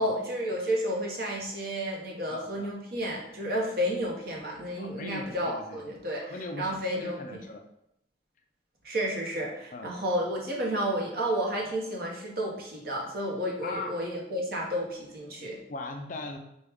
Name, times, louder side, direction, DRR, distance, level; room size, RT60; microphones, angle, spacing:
voice 1, 0.0-6.2 6.6-7.4 8.8-15.6, equal, 55° right, -1 dB, 0.9 m, -31 dB
voice 2, 2.3-2.7 4.8-5.9 6.2-7.6 9.7-10.0 13.6-14.0 15.7-16.4, left 2 dB, 45° left, 4 dB, 0.4 m, -39 dB
4.5 x 2.3 x 3.4 m, 0.79 s
head